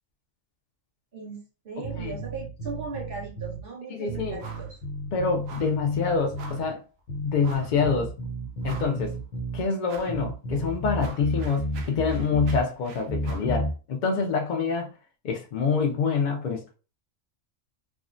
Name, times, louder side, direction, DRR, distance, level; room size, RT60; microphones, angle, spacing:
voice 1, 1.1-4.8, right 3 dB, 45° right, 1.3 m, -38 dB
sound 1, 1.8-3.6 4.1-6.7 7.1-9.6 10.1-12.6 13.1-13.7, equal, 70° left, 1.0 m, -32 dB
voice 2, 3.9-4.4 5.1-6.8 7.2-8.1 8.6-9.1 9.5-14.9 15.2-16.6, left 5 dB, 85° left, 0.4 m, -26 dB
sound 2, 4.4-4.7 5.0-5.1 5.5-5.8 6.4-6.7 7.4-7.8 8.2-8.3 8.6-9.2 9.9-10.2 10.6-13.5, right 3 dB, 80° right, 1.0 m, -45 dB
3.4 x 2.1 x 2.5 m
omnidirectional pair, 1.4 m